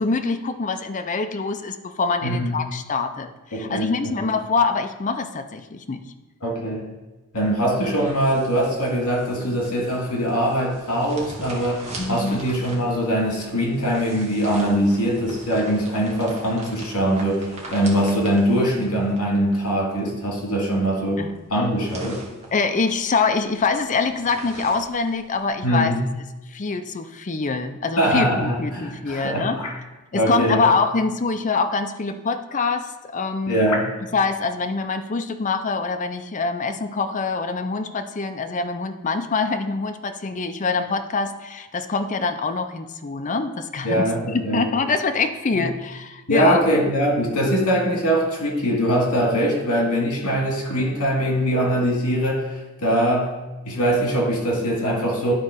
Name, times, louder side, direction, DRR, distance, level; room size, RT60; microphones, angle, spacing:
voice 1, 0.0-6.0 12.0-12.4 21.2-21.3 22.5-25.9 26.5-29.6 30.1-33.6 34.1-46.6, left 4 dB, 35° left, 7 dB, 0.5 m, -24 dB
voice 2, 2.2-2.5 3.5-4.3 6.4-6.8 7.3-21.2 21.5-22.2 25.6-26.0 28.0-29.8 30.1-30.7 33.5-33.9 43.8-44.7 45.5-45.7 46.3-53.3 53.7-55.3, equal, 75° left, 0 dB, 2.1 m, -22 dB
sound 1, 7.4-25.7, right 2 dB, 30° right, 1.5 m, -42 dB
11.5 x 4.1 x 5.1 m, 1.1 s
head